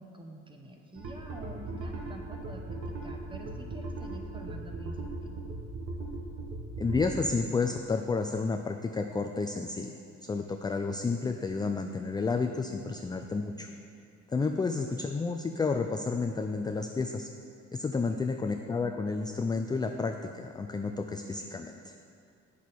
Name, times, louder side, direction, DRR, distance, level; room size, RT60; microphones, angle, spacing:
voice 1, 0.0-5.4 14.4-14.6 18.1-18.2, right 1 dB, 15° right, 2 dB, 1.0 m, -47 dB
sound 1, 1.0-7.3, right 2 dB, 60° right, 1.4 m, -38 dB
voice 2, 6.8-9.9 10.2-13.7 14.3-17.3 17.7-21.9, left 4 dB, 15° left, 5 dB, 0.3 m, -31 dB
8.4 x 6.2 x 4.2 m, 2.5 s
cardioid pair, 90°, 30 cm